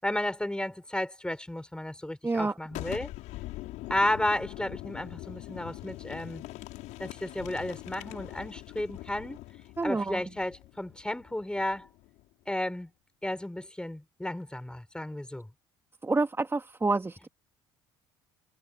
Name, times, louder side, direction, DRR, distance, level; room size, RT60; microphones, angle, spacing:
voice 1, 0.0-3.1 3.9-6.4 7.0-9.4 9.8-11.9 12.5-12.9 13.2-15.5, left 1 dB, 5° left, 7.2 m, -33 dB
voice 2, 2.2-2.5 9.8-10.2 16.0-17.3, right 3 dB, 20° right, 2.5 m, -28 dB
Boom, 2.7-12.3, left 18 dB, 65° left, 6.6 m, -43 dB
hypercardioid pair, 60°, 13 cm